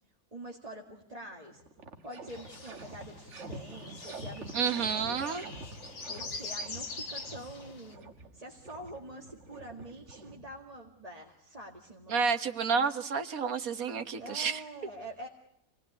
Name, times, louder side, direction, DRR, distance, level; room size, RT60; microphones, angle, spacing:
voice 1, 0.3-1.6 2.0-5.4 6.1-12.3 14.2-15.3, right 1 dB, 25° right, 0 dB, 2.0 m, -46 dB
sound 1, 1.1-1.2 1.5-10.9, right 2 dB, 55° right, 1.7 m, -47 dB
sound 2, 2.3-7.9, left 3 dB, 60° left, 2.5 m, -44 dB
voice 2, 4.5-5.4 12.1-14.6, right 5 dB, 70° right, 9 dB, 1.8 m, -30 dB
27.0 x 19.0 x 9.8 m, 0.80 s
omnidirectional pair, 1.6 m